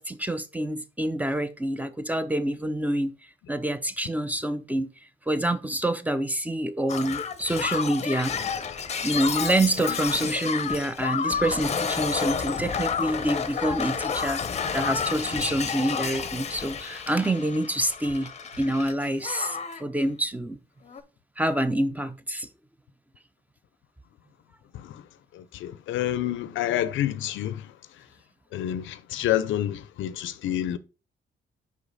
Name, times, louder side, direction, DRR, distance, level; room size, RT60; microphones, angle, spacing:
voice 1, 0.0-3.1 3.5-4.9 5.3-8.3 9.0-14.4 14.7-18.3 18.6-20.6 21.4-22.5, right 1 dB, 10° right, 0.5 m, -27 dB
Shatter, 6.9-18.9 19.2-19.8 20.9-21.0, left 6 dB, 35° left, 0.7 m, -30 dB
Drum kit, 12.3-12.4 13.0-13.4 14.2-14.3 15.2-15.3 15.9-16.3 17.1-17.2 18.0-18.2 18.5-18.7 19.0-19.1 19.7-19.8, right 1 dB, 65° right, 4.1 m, -50 dB
voice 2, 25.3-27.7 28.5-30.8, left 12 dB, 80° left, 0.5 m, -28 dB
5.6 x 4.9 x 4.0 m
cardioid pair, 90°, 20 cm